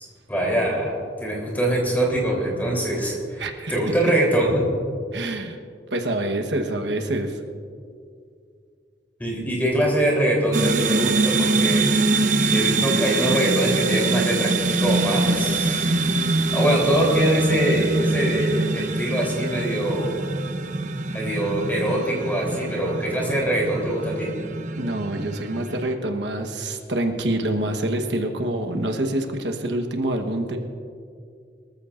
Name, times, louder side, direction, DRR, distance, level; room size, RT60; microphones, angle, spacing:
voice 1, 0.3-0.9 1.2-3.4 3.7-4.5 9.2-11.9 12.4-14.5 14.8-15.9 16.5-20.2 21.1-24.3, right 1 dB, 10° left, -3 dB, 3.4 m, -23 dB
voice 2, 3.4-3.8 5.1-5.6 5.9-7.4 24.8-30.6, right 1 dB, 85° right, 5 dB, 1.2 m, -26 dB
sound 1, 10.5-25.9, right 3 dB, 45° right, 0.7 m, -24 dB
23.5 x 14.5 x 2.5 m, 2.3 s
head